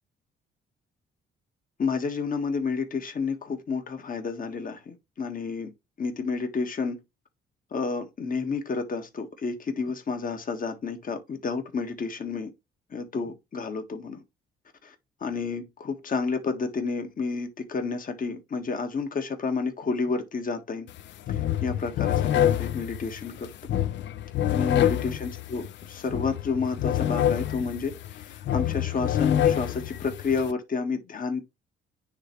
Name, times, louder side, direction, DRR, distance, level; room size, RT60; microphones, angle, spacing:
voice 1, 1.8-5.7 6.0-7.0 7.7-12.5 12.9-14.2 14.8-14.9 15.2-20.9 21.3-23.5 24.5-31.4, left 4 dB, 45° left, 1.6 m, -30 dB
sound 1, 20.9-21.0 21.3-30.5, left 11 dB, 65° left, 0.4 m, -27 dB
9.5 x 3.4 x 3.1 m
cardioid pair, 90°, 20 cm